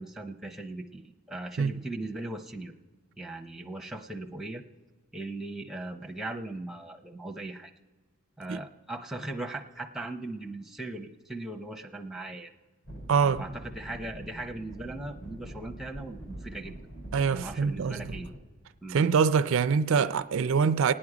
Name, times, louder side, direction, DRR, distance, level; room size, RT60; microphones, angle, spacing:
voice 1, 0.0-2.7 3.2-4.6 5.1-7.7 8.4-12.5 13.2-16.7 17.3-18.3 18.8-19.0, right 2 dB, ahead, 0.6 m, -39 dB
sound 1, 12.8-18.4, right 1 dB, 55° left, 4.1 m, -44 dB
voice 2, 13.1-13.4 17.1-18.1 18.9-20.9, right 6 dB, 60° right, 0.4 m, -24 dB
26.5 x 9.4 x 4.9 m
head